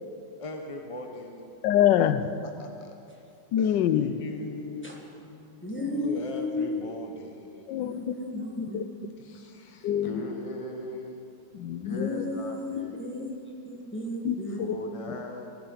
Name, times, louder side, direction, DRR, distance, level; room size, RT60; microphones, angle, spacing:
voice 1, 0.4-1.5 2.4-2.9 3.6-5.0 5.2-5.5 5.8-7.4 9.3-11.2 11.8-13.2 14.6-15.6, left 2 dB, 25° left, 3 dB, 0.8 m, -39 dB
voice 2, 1.6-2.3 3.5-4.2 7.7-8.1 8.6-8.8 9.8-10.2 11.5-12.2 14.2-14.7, left 10 dB, 80° left, 12 dB, 1.3 m, -25 dB
voice 3, 5.6-6.8 7.8-9.2 11.9-13.4 13.6-14.8, left 2 dB, 5° left, -1 dB, 1.4 m, -33 dB
17.0 x 15.5 x 4.0 m, 2.7 s
omnidirectional pair, 1.9 m